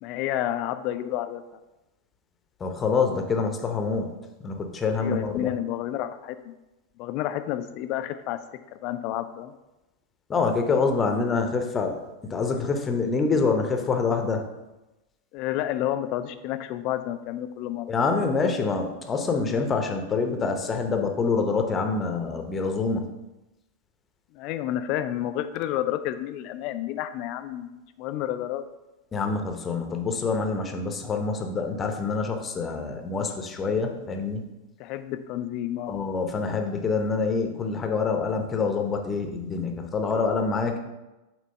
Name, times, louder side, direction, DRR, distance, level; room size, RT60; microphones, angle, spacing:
voice 1, 0.0-1.4 4.9-6.5 7.0-8.4 8.8-9.5 15.3-17.9 24.3-28.6 34.8-36.0, left 12 dB, 40° left, 10 dB, 0.4 m, -30 dB
voice 2, 2.6-4.1 4.4-5.5 10.3-12.0 12.2-14.4 17.9-23.0 29.1-34.4 35.9-40.8, left 4 dB, 20° left, 4 dB, 0.8 m, -26 dB
7.5 x 3.0 x 5.4 m, 1.0 s
figure-of-eight pair, 90°, 0 cm